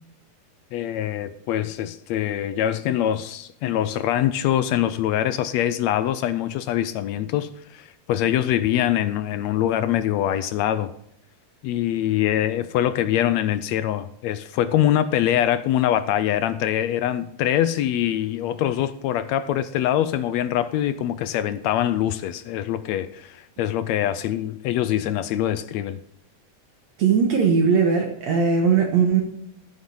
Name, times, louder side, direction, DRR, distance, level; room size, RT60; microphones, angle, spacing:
voice 1, 0.7-10.9 11.6-26.0, left 11 dB, 80° left, 1.6 m, -24 dB
voice 2, 27.0-29.2, right 6 dB, 65° right, 2.4 m, -19 dB
14.5 x 7.3 x 5.5 m
omnidirectional pair, 3.5 m